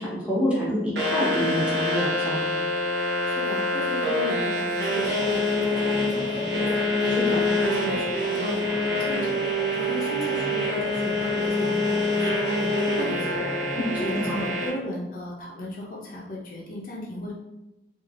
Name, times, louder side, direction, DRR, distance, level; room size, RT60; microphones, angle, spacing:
voice 1, 0.0-2.4 7.1-7.3 13.8-14.4, equal, 10° right, -8 dB, 0.9 m, -27 dB
sound 1, 1.0-14.7, left 1 dB, 70° right, 0.7 m, -26 dB
voice 2, 3.3-9.3 9.7-17.3, left 1 dB, 50° left, -3 dB, 0.5 m, -36 dB
sound 2, 4.9-14.6, equal, 25° right, 1.3 m, -36 dB
3.1 x 2.4 x 2.4 m, 0.98 s
head